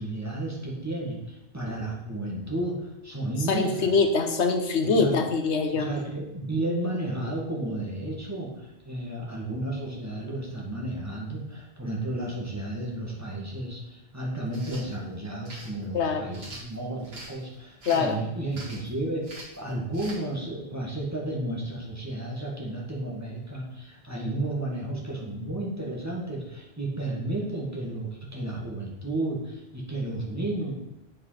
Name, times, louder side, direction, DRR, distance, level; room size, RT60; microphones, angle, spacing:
voice 1, 0.0-4.0 4.8-5.2 5.7-19.3 19.6-30.7, right 1 dB, 15° right, -3 dB, 1.9 m, -32 dB
voice 2, 3.5-5.9 15.9-16.4 17.9-18.2, left 4 dB, 85° left, 5 dB, 1.3 m, -24 dB
sound 1, 14.5-14.9 15.5-15.7 16.3-17.3 17.8-18.1 18.5-18.9 19.2-19.6 19.9-20.2, right 2 dB, 60° right, 2.3 m, -43 dB
7.8 x 5.4 x 5.7 m, 0.91 s
omnidirectional pair, 1.1 m